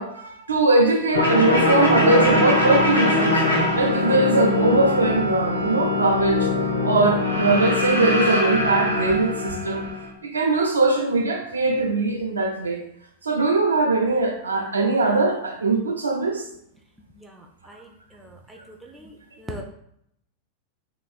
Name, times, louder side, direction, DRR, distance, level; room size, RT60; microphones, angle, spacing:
voice 1, 0.0-3.4 3.7-6.5 6.8-9.9 10.2-12.8 13.2-16.5, right 3 dB, 75° right, 2 dB, 0.5 m, -21 dB
sound 1, 1.1-10.1, left 2 dB, 90° left, 0.7 m, -22 dB
voice 2, 18.2-18.6 18.9-19.1 19.4-19.6, equal, 5° right, 0 dB, 0.4 m, -39 dB
3.0 x 2.8 x 2.3 m, 0.73 s
figure-of-eight pair, 90°, 0 cm